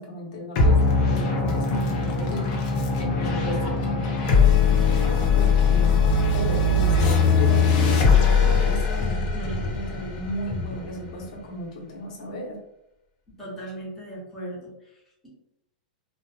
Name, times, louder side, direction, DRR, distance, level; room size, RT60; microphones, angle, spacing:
voice 1, 0.0-2.5 3.0-4.6 5.3-12.6, equal, 60° left, -2 dB, 0.8 m, -34 dB
sound 1, 0.6-11.3, left 4 dB, 35° left, 0.6 m, -21 dB
voice 2, 1.7-2.2 9.0-9.8 13.4-15.3, right 1 dB, 5° left, -9 dB, 0.8 m, -38 dB
2.5 x 2.1 x 2.7 m, 0.84 s
supercardioid pair, 165°, 5 cm